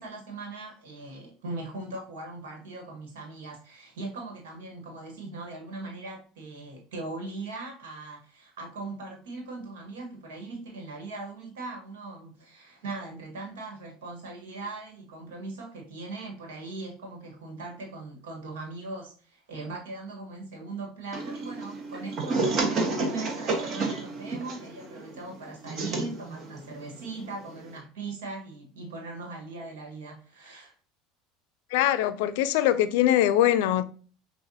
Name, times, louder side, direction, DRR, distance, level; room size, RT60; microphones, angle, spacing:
voice 1, 0.0-30.7, right 3 dB, 85° right, 1.4 m, -40 dB
sound 1, 21.1-27.8, right 3 dB, 50° right, 1.2 m, -31 dB
voice 2, 31.7-33.8, left 12 dB, 75° left, 0.4 m, -22 dB
6.0 x 2.4 x 2.7 m
hypercardioid pair, 90°, 0 cm